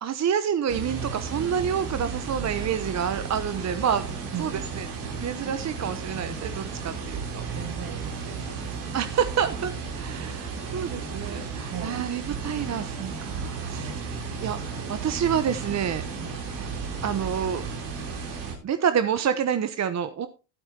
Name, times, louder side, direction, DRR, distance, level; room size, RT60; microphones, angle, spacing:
voice 1, 0.0-4.1 4.4-4.9 5.2-7.4 8.9-9.7 10.0-14.1 14.4-16.0 17.0-17.7 18.3-18.4 18.6-20.3, right 8 dB, 35° right, 11 dB, 0.9 m, -28 dB
sound 1, 0.7-18.5, right 5 dB, 85° right, 3.7 m, -34 dB
voice 2, 4.3-4.8 7.5-8.7 11.2-12.1 13.8-14.1 16.2-16.5, right 9 dB, 60° right, 5 dB, 2.2 m, -40 dB
13.0 x 11.5 x 2.8 m, 0.31 s
supercardioid pair, 75°, 45 cm